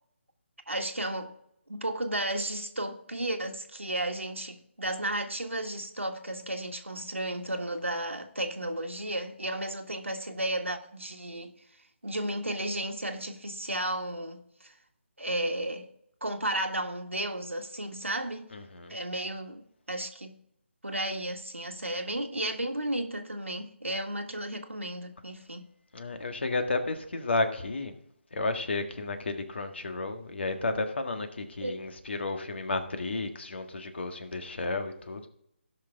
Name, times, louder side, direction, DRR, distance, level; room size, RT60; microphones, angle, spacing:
voice 1, 0.7-1.3 1.7-11.5 12.0-14.7 15.2-15.9 16.2-18.5 18.9-20.4 20.8-25.7 31.6-31.8, right 1 dB, 90° right, 1.6 m, -33 dB
voice 2, 18.5-18.9 25.9-27.9 28.3-35.3, left 3 dB, 65° left, 1.7 m, -32 dB
17.5 x 5.9 x 3.6 m
figure-of-eight pair, 150°, 7 cm